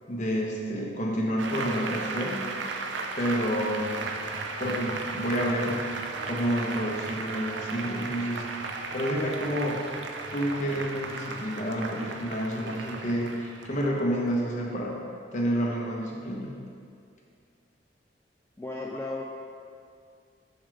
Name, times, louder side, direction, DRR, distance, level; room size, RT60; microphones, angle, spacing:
voice 1, 0.1-2.5 3.1-4.0 4.6-5.8 6.2-8.5 8.9-9.8 10.3-15.0 15.3-16.5, equal, 40° left, -2 dB, 1.0 m, -29 dB
Applause, 1.4-14.4, right 3 dB, 80° right, 0.6 m, -35 dB
voice 2, 18.6-19.2, left 2 dB, 15° left, -3 dB, 0.3 m, -34 dB
7.0 x 6.3 x 3.4 m, 2.3 s
head